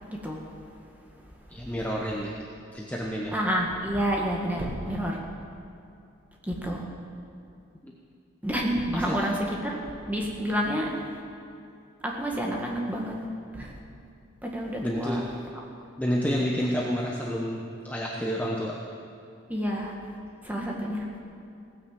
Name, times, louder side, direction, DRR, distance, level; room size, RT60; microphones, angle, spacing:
voice 1, 0.1-0.6 3.3-5.2 6.4-6.8 8.4-9.8 10.1-11.2 12.0-13.3 13.5-13.7 14.4-15.2 19.5-20.1 20.4-21.1, equal, 10° right, -1 dB, 1.9 m, -29 dB
voice 2, 1.5-2.3 2.7-3.3 7.8-7.9 8.9-9.2 14.8-15.3 16.0-18.8, equal, 10° left, -3 dB, 1.0 m, -29 dB
17.0 x 10.0 x 7.6 m, 2.6 s
head